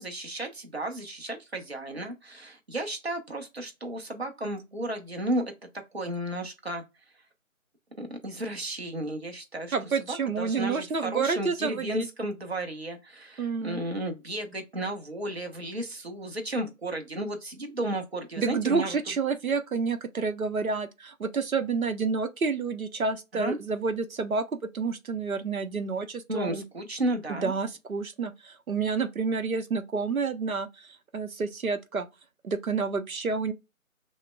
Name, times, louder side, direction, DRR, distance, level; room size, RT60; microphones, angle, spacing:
voice 1, 0.0-5.4 5.9-6.8 8.0-9.7 10.0-19.0 23.3-23.6 26.3-27.6, right 1 dB, 50° right, 0.9 m, -33 dB
voice 2, 9.7-12.1 13.4-13.8 18.4-26.6 27.4-32.1 32.4-33.5, right 5 dB, 85° right, 0.8 m, -29 dB
6.2 x 2.1 x 2.2 m
figure-of-eight pair, 180°, 41 cm